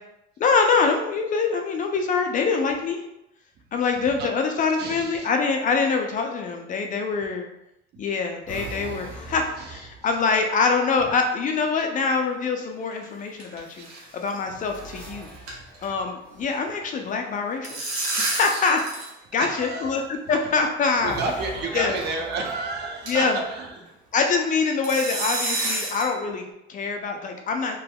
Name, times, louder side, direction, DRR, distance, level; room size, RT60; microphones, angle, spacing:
voice 1, 0.4-3.0 3.7-7.5 8.0-13.9 14.1-15.3 15.8-17.8 18.2-18.8 19.3-21.2 21.7-21.9 23.1-23.4 24.1-27.8, left 4 dB, 40° left, 4 dB, 0.4 m, -24 dB
voice 2, 3.8-4.3 4.8-5.3 9.6-9.8 13.8-14.0 14.5-14.6 18.4-18.7 19.4-20.0 21.0-24.0, right 3 dB, 55° right, 2 dB, 0.7 m, -31 dB
sound 1, 8.5-10.7 12.0-12.5 13.6-17.0 20.9-23.9 24.6-26.5, right 2 dB, 5° left, 0.9 m, -43 dB
sound 2, 12.8-13.6 13.8-14.0 14.3-14.4 14.7-15.0 15.2-16.0 16.3-16.5 17.3-19.1 19.4-19.5 20.3-20.4 21.3-21.5 22.0-22.1 22.5-22.6 23.1-23.3 24.8-26.1, right 2 dB, 90° right, 1.2 m, -29 dB
3.3 x 2.9 x 2.2 m, 0.86 s
cardioid pair, 120°, 21 cm